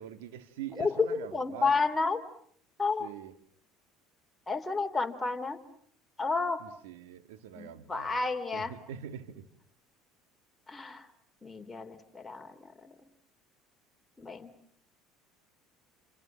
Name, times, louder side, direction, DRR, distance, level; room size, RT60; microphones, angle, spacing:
voice 1, 0.0-1.8 3.0-3.3 6.6-8.2 8.5-9.5, right 10 dB, 85° right, 12 dB, 1.9 m, -44 dB
voice 2, 0.8-2.2 2.8-3.1 4.5-5.6 6.2-6.6 7.5-8.7 10.7-11.1 11.4-12.9 14.2-14.5, left 4 dB, 15° left, 4 dB, 3.4 m, -31 dB
28.0 x 27.5 x 7.5 m, 0.62 s
supercardioid pair, 85°, 0 cm